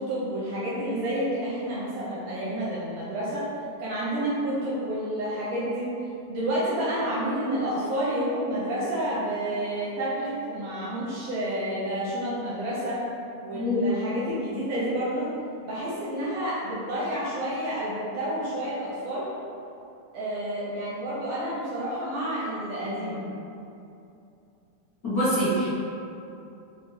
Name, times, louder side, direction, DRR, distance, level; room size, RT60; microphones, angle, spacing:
voice 1, 0.0-3.4 3.8-5.9 6.3-13.0 13.4-15.3 15.7-19.2 20.1-23.2, right 1 dB, 80° right, -8 dB, 1.4 m, -29 dB
voice 2, 13.5-13.8 25.0-25.7, equal, 80° left, -16 dB, 0.8 m, -24 dB
5.9 x 2.0 x 2.7 m, 2.7 s
omnidirectional pair, 3.5 m